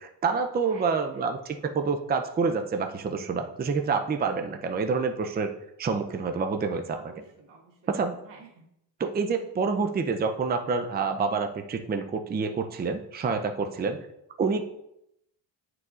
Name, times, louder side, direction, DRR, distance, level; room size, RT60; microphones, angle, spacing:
voice 1, 0.0-5.5 5.8-7.0 7.9-8.1 9.0-14.0 14.4-14.6, right 5 dB, 25° right, 5 dB, 0.5 m, -27 dB
voice 2, 0.6-1.3 6.9-7.9 8.2-8.7, right 5 dB, 75° right, -4 dB, 1.7 m, -51 dB
9.5 x 4.7 x 2.5 m, 0.81 s
cardioid pair, 100°, 43 cm